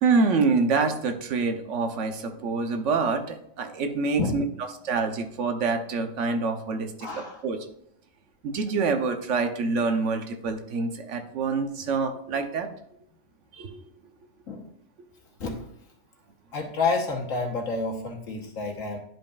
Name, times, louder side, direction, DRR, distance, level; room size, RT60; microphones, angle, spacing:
voice 1, 0.0-4.4 4.8-7.6 8.4-12.7 13.5-13.8, right 4 dB, 70° right, 7 dB, 1.1 m, -26 dB
voice 2, 7.0-7.4 14.5-14.6 15.4-15.6 16.5-19.0, left 3 dB, 90° left, 2 dB, 1.6 m, -29 dB
10.5 x 5.3 x 2.4 m, 0.73 s
omnidirectional pair, 1.3 m